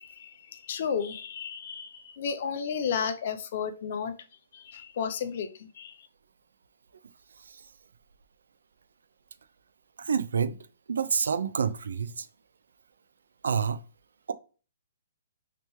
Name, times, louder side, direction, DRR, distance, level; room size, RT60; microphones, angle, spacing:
voice 1, 0.0-4.1 4.5-6.1, left 6 dB, 50° left, 0.5 m, -33 dB
voice 2, 10.0-10.6 10.9-12.3 13.4-13.8, right 6 dB, 90° right, 0.4 m, -28 dB
3.3 x 2.9 x 3.0 m
hypercardioid pair, 160°, 0 cm